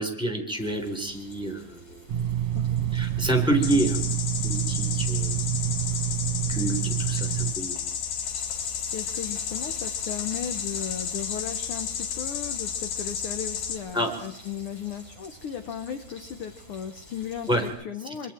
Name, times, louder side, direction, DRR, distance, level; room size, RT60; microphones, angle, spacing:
voice 1, 0.0-2.0 2.9-4.0 4.4-5.4 6.5-7.8 13.9-14.1 17.5-17.6, right 1 dB, ahead, 4 dB, 3.4 m, -28 dB
Frying (food), 0.5-17.7, left 1 dB, 45° left, 7.6 m, -48 dB
sound 1, 2.1-7.5, right 11 dB, 65° right, 2.0 m, -27 dB
sound 2, 3.6-13.8, left 7 dB, 90° left, 3.3 m, -32 dB
voice 2, 8.9-18.3, left 8 dB, 60° left, 8 dB, 1.5 m, -36 dB
25.5 x 24.5 x 4.5 m, 0.69 s
omnidirectional pair, 3.6 m